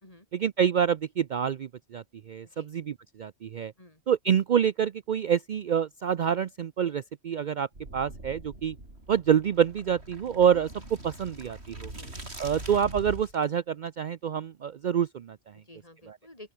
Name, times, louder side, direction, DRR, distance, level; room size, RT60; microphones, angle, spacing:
voice 1, 0.3-3.7 4.1-7.7 7.9-8.8 9.1-11.9 12.4-15.4 16.1-16.2, right 8 dB, 55° right, 0.6 m, -27 dB
sound 1, 7.7-13.4, right 1 dB, 75° right, 6.3 m, -43 dB
voice 2, 11.9-12.2 15.5-16.5, left 1 dB, 35° left, 4.5 m, -52 dB
open air
omnidirectional pair, 1.1 m